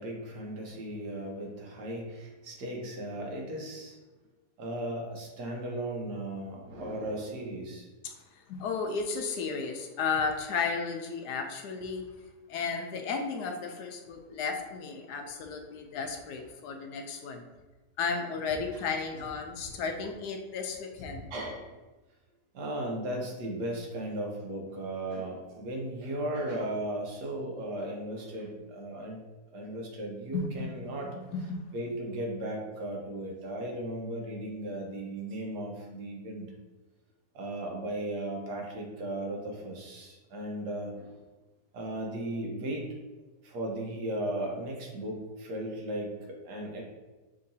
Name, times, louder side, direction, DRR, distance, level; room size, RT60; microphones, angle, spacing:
voice 1, 0.0-4.0 4.6-7.9 18.7-18.8 21.3-21.7 22.5-29.2 29.5-31.1 31.3-36.5 37.3-41.1 41.7-42.9 43.4-46.8, right 1 dB, 80° right, -1 dB, 1.5 m, -36 dB
voice 2, 8.5-12.0 12.5-17.4 18.0-21.3 30.3-30.7 31.3-31.6, left 5 dB, 75° left, 4 dB, 1.2 m, -33 dB
6.5 x 2.9 x 2.7 m, 1.2 s
omnidirectional pair, 1.8 m